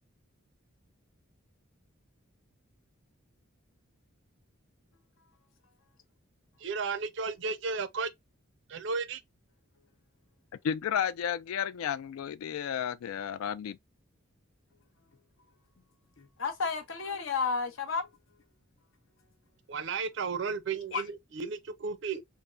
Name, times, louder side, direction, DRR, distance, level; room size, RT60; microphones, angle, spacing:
voice 1, 6.6-8.1 8.7-9.2 19.7-22.2, right 5 dB, 60° right, 0.4 m, -34 dB
voice 2, 10.6-13.8, left 8 dB, 85° left, 0.3 m, -32 dB
voice 3, 16.2-18.1 20.9-21.0, left 5 dB, 70° left, 0.7 m, -32 dB
3.4 x 2.0 x 2.4 m
head